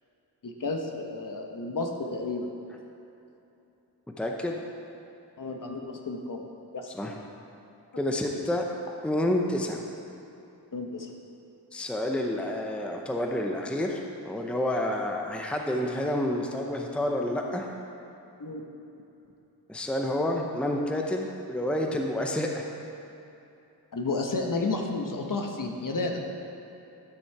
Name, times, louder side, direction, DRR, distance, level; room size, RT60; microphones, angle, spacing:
voice 1, 0.4-2.5 5.4-6.4 6.7-6.9 10.7-11.1 18.4-18.6 23.9-26.2, left 3 dB, 50° left, 2 dB, 1.1 m, -31 dB
voice 2, 4.2-4.6 6.9-7.1 8.0-8.6 9.0-9.8 11.7-17.7 19.7-22.7, left 1 dB, 5° left, 1 dB, 0.7 m, -29 dB
12.0 x 6.2 x 4.7 m, 2.9 s
wide cardioid pair, 85°, 41 cm